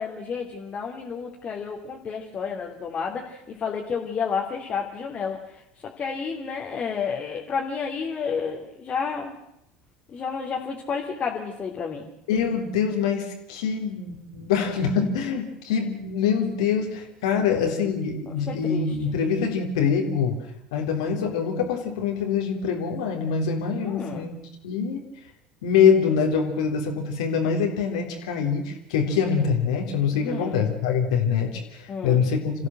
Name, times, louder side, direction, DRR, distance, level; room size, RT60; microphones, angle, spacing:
voice 1, 0.0-9.3 10.1-12.1 18.5-18.9 23.8-24.3 30.2-30.6 31.9-32.2, left 6 dB, 35° left, -1 dB, 3.1 m, -31 dB
voice 2, 12.3-20.4 20.7-24.4 24.6-25.0 25.6-32.7, left 6 dB, 70° left, 2 dB, 3.5 m, -24 dB
27.5 x 15.0 x 7.8 m, 0.84 s
figure-of-eight pair, 70°, 4 cm